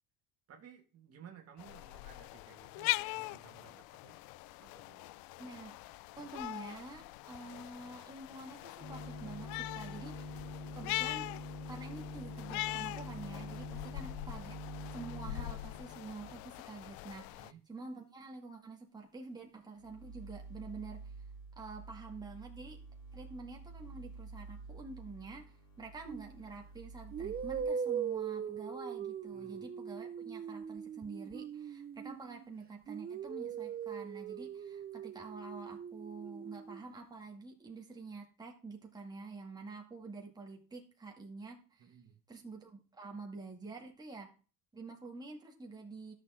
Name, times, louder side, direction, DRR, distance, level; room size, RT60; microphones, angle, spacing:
voice 1, 0.5-4.2 4.6-5.2 13.8-14.1 17.3-17.6 29.3-29.6 41.8-42.2, right 8 dB, 45° right, 3 dB, 2.0 m, -57 dB
sound 1, 1.6-17.5, left 19 dB, 90° left, 0.5 m, -42 dB
voice 2, 5.4-5.8 6.2-11.3 11.7-14.5 14.9-21.1 21.6-22.8 23.1-42.0 42.3-44.3 44.7-46.1, right 3 dB, 10° right, 0 dB, 2.1 m, -48 dB
sound 2, 8.8-16.5 19.8-27.6, left 1 dB, 45° left, 4.0 m, -47 dB
sound 3, 26.1-26.3 27.1-32.5 32.9-36.8, right 7 dB, 25° right, 0.5 m, -40 dB
13.0 x 6.7 x 3.7 m, 0.36 s
cardioid pair, 150°, 35 cm